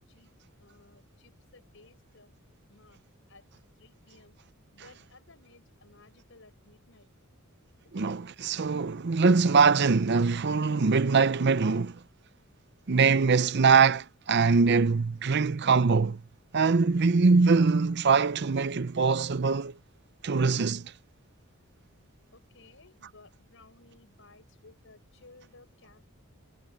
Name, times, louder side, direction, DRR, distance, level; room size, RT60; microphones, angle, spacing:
voice 1, 0.6-2.3 2.7-3.0 3.3-3.4 3.8-4.3 4.7-7.1 22.3-26.0, left 3 dB, 60° left, 6.1 m, -57 dB
voice 2, 7.9-12.0 12.9-16.2 16.5-19.7 20.2-20.9, right 4 dB, 50° right, 0.6 m, -23 dB
head